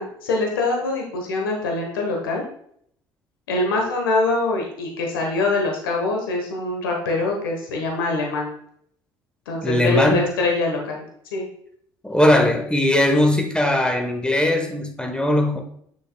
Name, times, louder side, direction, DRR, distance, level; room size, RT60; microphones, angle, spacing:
voice 1, 0.0-2.4 3.5-8.5 9.5-11.0 11.3-11.5, left 2 dB, 85° left, 1.2 m, -24 dB
voice 2, 9.6-10.3 12.0-15.6, left 1 dB, 10° left, 1.2 m, -19 dB
7.7 x 6.3 x 2.3 m
hypercardioid pair, 60°, 11 cm